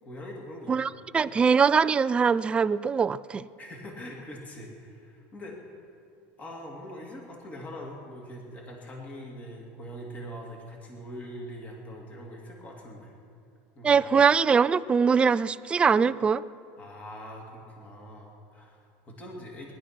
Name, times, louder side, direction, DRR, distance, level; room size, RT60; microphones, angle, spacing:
voice 1, 0.0-0.9 3.6-5.7 6.4-13.1 13.7-14.0 16.8-19.7, equal, 25° left, -1 dB, 2.7 m, -42 dB
voice 2, 0.7-3.5 13.8-16.4, right 6 dB, 15° right, 14 dB, 0.3 m, -22 dB
20.0 x 11.5 x 6.0 m, 2.4 s
supercardioid pair, 140°, 7 cm